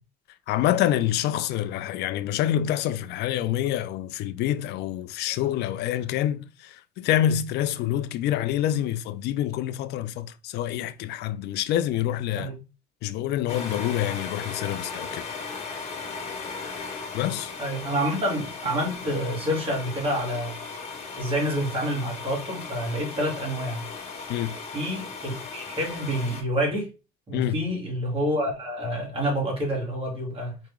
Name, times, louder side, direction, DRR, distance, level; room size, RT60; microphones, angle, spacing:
voice 1, 0.5-12.5 13.0-15.2 17.1-17.5 24.3-24.6 27.3-27.6, left 12 dB, 80° left, 0.4 m, -27 dB
sound 1, 13.5-26.4, left 4 dB, 40° left, 1.8 m, -37 dB
voice 2, 17.6-20.5 21.2-23.8 24.7-26.9 27.3-30.6, equal, 35° right, 2.5 m, -28 dB
4.9 x 2.8 x 3.6 m
cardioid pair, 110°, 17 cm